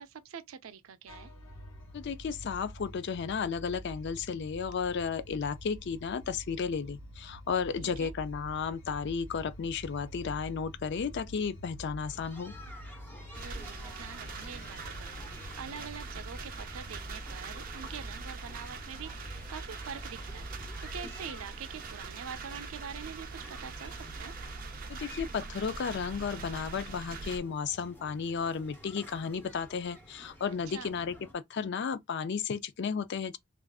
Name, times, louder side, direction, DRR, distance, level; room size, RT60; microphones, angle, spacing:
voice 1, 0.0-1.3 7.8-8.1 13.4-24.3 30.7-30.9, right 7 dB, 85° right, 0.5 m, -45 dB
sound 1, 1.1-21.0, equal, 75° left, 1.2 m, -47 dB
voice 2, 1.9-12.5 24.9-33.4, left 6 dB, 55° left, 0.4 m, -33 dB
sound 2, 12.0-31.3, left 1 dB, 10° left, 0.9 m, -52 dB
sound 3, 13.3-27.4, right 4 dB, 45° right, 0.6 m, -43 dB
3.5 x 2.4 x 2.3 m
head